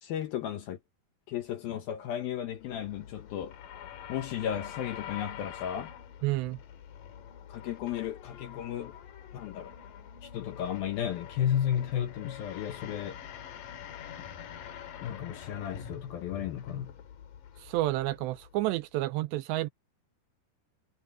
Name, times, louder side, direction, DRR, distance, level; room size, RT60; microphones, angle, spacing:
voice 1, 0.0-0.8 1.3-3.6 4.1-5.9 7.5-8.9 9.3-9.7 10.2-13.2 14.2-14.3 15.0-17.0, left 10 dB, 70° left, 2.4 m, -34 dB
sound 1, 2.5-18.9, left 9 dB, 55° left, 2.9 m, -46 dB
voice 2, 6.2-6.6 17.6-19.7, right 17 dB, 85° right, 2.7 m, -30 dB
omnidirectional pair, 5.4 m